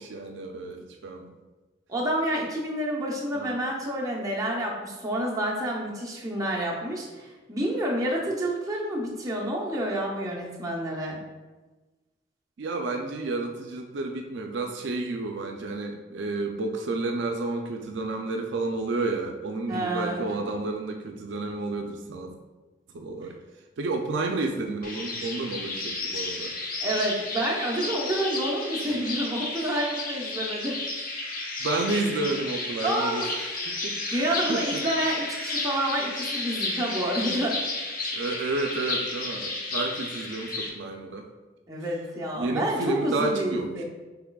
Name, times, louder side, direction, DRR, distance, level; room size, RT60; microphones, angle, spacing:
voice 1, 0.0-1.3 3.3-3.5 12.6-22.3 22.9-23.3 23.8-26.5 28.9-29.0 31.6-34.2 34.5-34.8 38.1-41.2 42.3-43.8, right 2 dB, 65° right, 3 dB, 0.4 m, -31 dB
voice 2, 1.9-11.2 19.7-20.3 23.2-23.3 26.8-30.8 32.8-33.3 34.1-37.5 41.7-43.8, right 1 dB, 15° right, -4 dB, 0.7 m, -29 dB
sound 1, 24.8-40.7, left 2 dB, 45° left, 0.5 m, -32 dB
5.9 x 3.3 x 2.3 m, 1.2 s
head